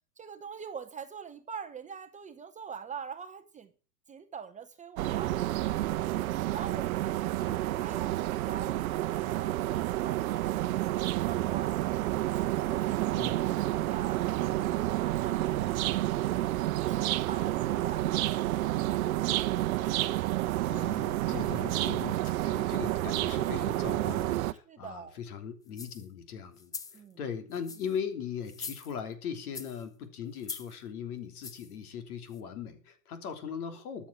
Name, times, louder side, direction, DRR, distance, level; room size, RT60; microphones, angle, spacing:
voice 1, 0.2-3.7 4.1-6.1 6.5-7.5 7.8-11.8 12.1-14.7 15.0-16.3 16.7-19.0 24.7-25.2 26.9-27.2, right 6 dB, 15° right, 8 dB, 0.9 m, -45 dB
sound 1, 5.0-24.5, right 15 dB, 60° right, 0.9 m, -30 dB
voice 2, 13.1-13.5 20.7-34.1, left 7 dB, 60° left, 8 dB, 3.2 m, -39 dB
sound 2, 25.7-26.1 26.6-27.0 27.5-28.0 28.4-29.1 29.5-29.8 30.4-30.8 31.4-31.7 32.3-32.4, left 4 dB, 10° left, 0.5 m, -43 dB
13.0 x 7.4 x 7.3 m, 0.38 s
hypercardioid pair, 115°, 49 cm